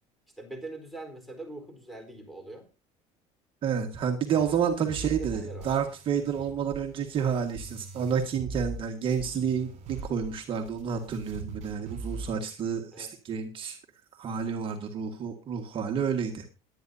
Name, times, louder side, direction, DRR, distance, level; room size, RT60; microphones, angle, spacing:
voice 1, 0.4-2.6 4.9-5.7 12.9-13.1, right 2 dB, ahead, 6 dB, 4.2 m, -42 dB
voice 2, 3.6-13.8 14.2-16.5, right 7 dB, 40° right, 4 dB, 1.7 m, -30 dB
sound 1, 4.4-8.8 9.1-12.4, right 4 dB, 55° right, 6.7 m, -41 dB
21.0 x 9.6 x 2.8 m, 0.29 s
cardioid pair, 130°, 13 cm